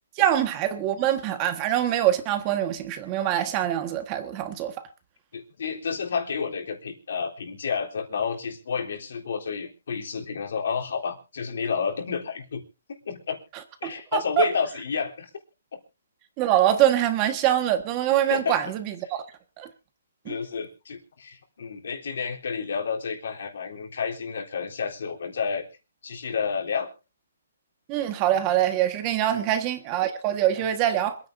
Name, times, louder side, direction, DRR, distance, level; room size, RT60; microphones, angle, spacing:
voice 1, 0.2-4.7 13.8-14.4 16.4-19.2 19.6-19.7 20.2-20.4 27.9-31.2, right 12 dB, 20° right, 1.5 m, -24 dB
voice 2, 5.3-12.6 13.1-13.4 13.8-15.3 18.2-18.6 20.3-25.7 26.0-26.9 29.3-29.5 30.5-30.6, left 6 dB, 60° left, 3.6 m, -30 dB
26.5 x 9.7 x 2.7 m
hypercardioid pair, 175°, 0 cm